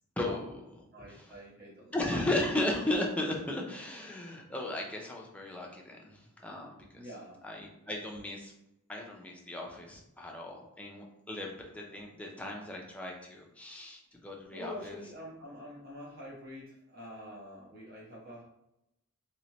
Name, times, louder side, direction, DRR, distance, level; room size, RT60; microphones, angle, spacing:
voice 1, 0.9-2.2 6.9-7.4 14.5-18.4, equal, 45° right, -6 dB, 1.1 m, -46 dB
voice 2, 1.9-6.1 6.4-7.0 7.4-8.5 8.9-15.0, left 1 dB, 5° left, -1 dB, 0.5 m, -35 dB
3.1 x 2.9 x 2.9 m, 0.85 s
head